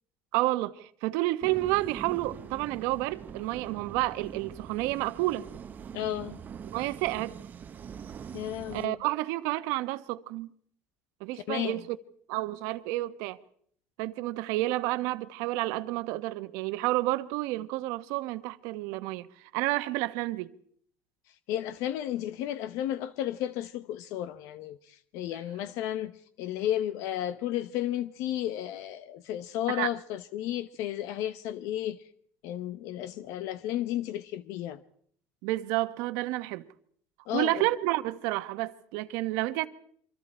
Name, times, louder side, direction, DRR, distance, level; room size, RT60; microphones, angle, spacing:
voice 1, 0.3-5.5 6.7-7.4 8.7-10.5 11.2-12.0 12.3-13.4 14.0-19.3 19.5-20.5 29.7-29.9 35.4-36.7 37.3-39.7, right 18 dB, 85° right, 1.2 m, -30 dB
sound 1, 1.4-8.9, right 7 dB, 35° right, 0.9 m, -43 dB
voice 2, 5.9-6.4 8.3-9.0 11.3-11.8 21.3-32.0 32.4-34.8 37.3-37.6, left 12 dB, 75° left, 1.0 m, -33 dB
28.0 x 25.0 x 4.4 m
cardioid pair, 135°, 5 cm